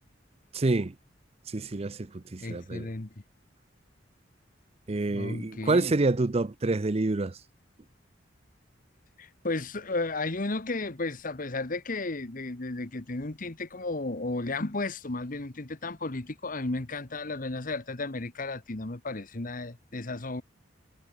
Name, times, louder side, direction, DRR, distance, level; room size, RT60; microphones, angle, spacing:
voice 1, 0.5-0.9 1.5-2.9 4.9-7.4, right 2 dB, 30° right, 0.6 m, -27 dB
voice 2, 2.4-3.1 5.0-5.9 9.2-20.4, left 2 dB, 45° left, 1.3 m, -34 dB
head